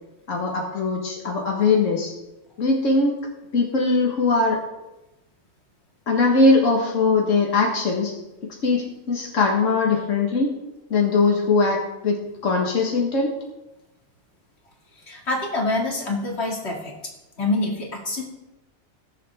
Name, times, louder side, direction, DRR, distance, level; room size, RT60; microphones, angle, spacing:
voice 1, 0.3-2.1 2.6-3.1 3.5-4.6 6.1-8.1 8.6-10.5 10.9-13.3, left 3 dB, 90° left, 0 dB, 1.8 m, -21 dB
voice 2, 15.0-16.9 17.4-18.2, left 2 dB, 60° left, -1 dB, 2.5 m, -26 dB
19.5 x 7.4 x 3.5 m, 0.97 s
omnidirectional pair, 1.3 m